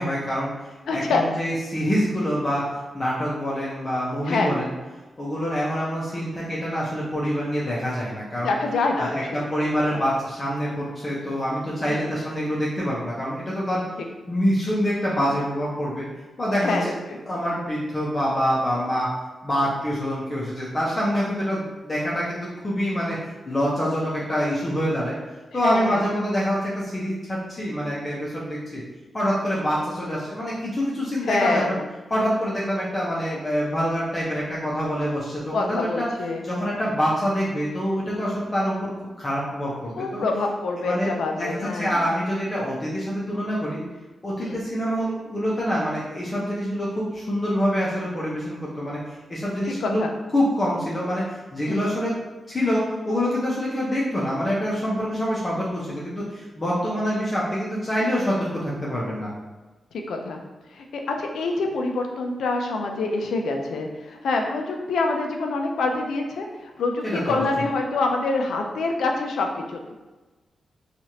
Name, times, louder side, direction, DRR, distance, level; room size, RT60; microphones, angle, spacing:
voice 1, 0.0-4.7 5.2-8.5 9.0-13.8 14.3-16.1 16.4-16.9 17.3-19.1 19.4-23.2 23.5-25.2 25.5-28.8 29.1-31.8 32.1-36.1 36.4-38.9 39.2-40.2 40.8-43.8 44.2-50.0 50.3-52.1 52.5-59.3 67.0-67.6, equal, 35° left, -6 dB, 0.7 m, -26 dB
voice 2, 0.9-1.2 4.3-4.5 8.4-9.5 9.9-10.0 11.9-12.1 16.6-17.2 25.6-26.0 31.2-31.8 35.5-36.5 40.0-42.0 44.4-44.6 49.8-50.1 51.7-51.9 59.9-60.4 60.7-70.0, left 3 dB, 90° left, 3 dB, 0.4 m, -26 dB
3.1 x 2.4 x 2.8 m, 1.2 s
cardioid pair, 75°, 0 cm